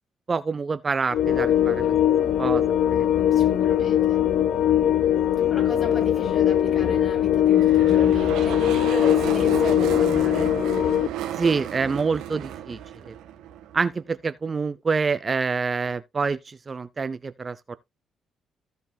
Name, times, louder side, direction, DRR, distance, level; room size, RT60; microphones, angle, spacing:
voice 1, 0.3-1.9 2.4-2.6 2.9-3.1 5.0-5.1 11.4-13.2 13.7-17.8, right 4 dB, 35° right, 0.5 m, -27 dB
sound 1, 1.1-11.1, left 11 dB, 65° left, 0.8 m, -20 dB
voice 2, 3.3-4.2 5.5-10.6, left 3 dB, 40° left, 6.3 m, -34 dB
sound 2, 7.5-13.9, right 11 dB, 90° right, 1.5 m, -34 dB
16.0 x 5.3 x 2.3 m
cardioid pair, 90°, 0 cm